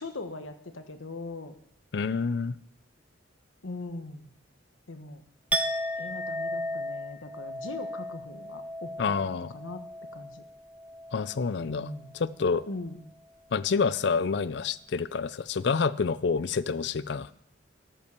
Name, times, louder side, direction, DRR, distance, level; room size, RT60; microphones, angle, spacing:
voice 1, 0.0-1.5 3.6-4.3 4.9-5.2 6.0-9.9 10.1-10.4 11.5-12.1 12.7-13.0, left 2 dB, 85° left, 8 dB, 1.2 m, -40 dB
voice 2, 1.9-2.6 9.0-9.5 11.1-11.9 12.2-12.6 13.5-17.3, left 5 dB, 60° left, 16 dB, 0.4 m, -28 dB
Chink clink, 5.5-11.4 11.7-12.1, equal, 10° right, 0.6 m, -35 dB
13.0 x 5.7 x 6.7 m, 0.75 s
head